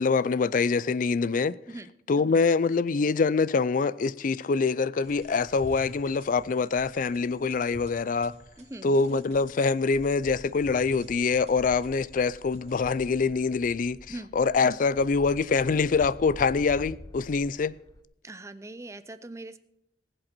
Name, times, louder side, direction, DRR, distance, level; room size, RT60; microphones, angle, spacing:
voice 1, 0.0-1.6 2.1-8.3 8.8-14.0 14.3-17.7, left 4 dB, 50° left, 0.4 m, -25 dB
sound 1, 5.0-13.4, equal, 40° right, 2.6 m, -51 dB
voice 2, 8.6-9.0 14.1-14.3 18.2-19.6, right 2 dB, 15° right, 0.6 m, -41 dB
sound 2, 9.5-18.0, left 1 dB, 20° left, 0.7 m, -47 dB
19.5 x 7.9 x 4.5 m
head